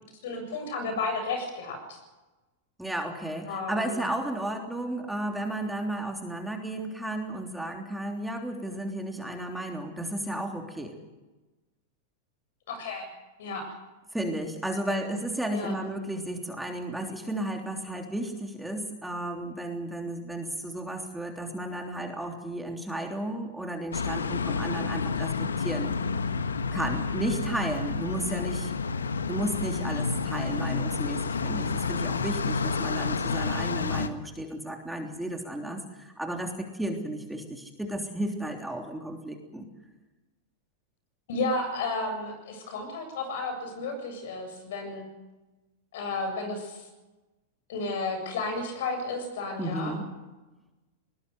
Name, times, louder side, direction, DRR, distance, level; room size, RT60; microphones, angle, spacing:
voice 1, 0.2-2.0 3.5-4.0 12.7-13.1 13.4-13.7 14.9-15.1 15.5-15.7 41.3-45.1 45.9-46.8 47.7-50.0, left 3 dB, 65° left, 7 dB, 7.7 m, -32 dB
voice 2, 2.8-11.0 14.1-25.9 26.7-28.8 29.3-39.7 49.6-50.0, right 1 dB, 5° right, 3 dB, 3.3 m, -33 dB
sound 1, 23.9-34.1, left 4 dB, 85° left, 1.4 m, -30 dB
20.5 x 20.5 x 8.2 m, 1.1 s
hypercardioid pair, 100°, 0 cm